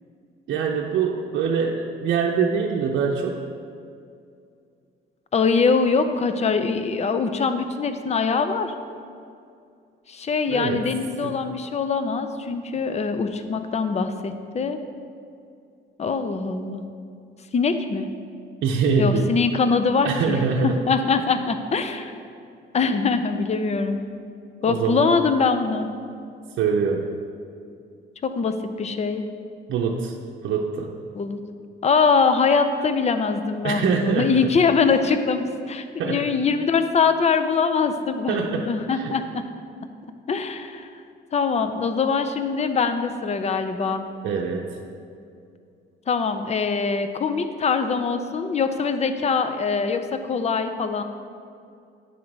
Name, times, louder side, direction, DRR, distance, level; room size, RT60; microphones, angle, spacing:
voice 1, 0.5-3.4 10.5-10.8 11.2-11.4 18.6-19.3 20.0-20.8 24.6-25.1 26.6-27.1 29.7-30.1 30.4-31.0 33.6-34.4 36.0-36.3 38.3-39.1 44.2-44.7, right 5 dB, 70° right, 0 dB, 0.6 m, -24 dB
voice 2, 5.3-8.7 10.1-14.8 16.0-16.8 17.5-18.1 19.0-22.1 22.7-24.0 24.6-25.9 28.2-29.2 31.1-31.4 31.8-39.4 40.3-40.9 41.3-44.0 46.1-51.0, left 5 dB, 35° left, 9 dB, 0.6 m, -23 dB
9.3 x 3.7 x 6.2 m, 2.4 s
cardioid pair, 90°, 20 cm